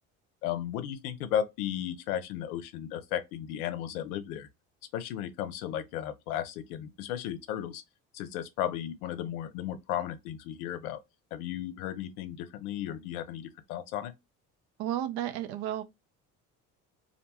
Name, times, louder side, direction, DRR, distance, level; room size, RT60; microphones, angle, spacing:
voice 1, 0.4-4.5 4.9-7.8 8.1-11.0 11.3-14.1, left 10 dB, 80° left, 0.6 m, -35 dB
voice 2, 14.8-15.8, right 12 dB, 60° right, 0.6 m, -32 dB
2.6 x 2.2 x 2.8 m
hypercardioid pair, 60°, 43 cm